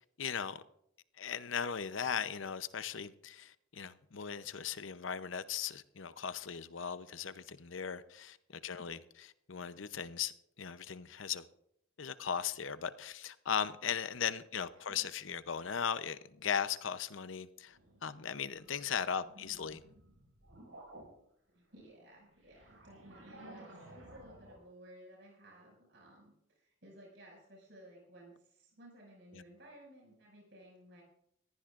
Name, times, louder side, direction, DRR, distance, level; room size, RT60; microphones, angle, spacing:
voice 1, 0.2-0.6 1.2-9.0 9.5-11.4 12.0-19.8 29.3-29.4, left 7 dB, 85° left, 0.7 m, -38 dB
sound 1, 17.7-21.1 21.7-24.6, right 1 dB, 85° right, 5.8 m, -55 dB
voice 2, 19.3-19.8 21.5-31.0, right 1 dB, 65° right, 6.1 m, -57 dB
21.0 x 15.0 x 2.5 m
head